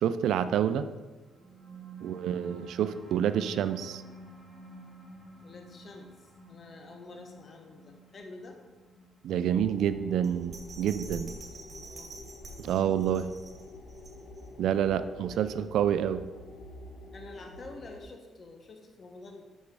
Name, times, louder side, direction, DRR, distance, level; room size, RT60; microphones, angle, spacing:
voice 1, 0.0-0.8 2.0-4.0 9.2-11.4 12.6-13.3 14.6-16.3, right 9 dB, 80° right, 12 dB, 0.4 m, -28 dB
sound 1, 1.2-12.2, right 3 dB, 5° left, 1.3 m, -50 dB
voice 2, 2.0-2.4 5.4-8.6 11.5-12.1 12.6-13.0 15.3-15.5 17.1-19.4, left 3 dB, 45° left, 3 dB, 1.1 m, -48 dB
sound 2, 9.4-18.0, left 1 dB, 85° left, 1.1 m, -48 dB
Bell, 10.2-14.6 15.0-15.1, right 2 dB, 40° right, 2.0 m, -47 dB
6.7 x 6.4 x 4.8 m, 1.3 s
cardioid pair, 90°, 0 cm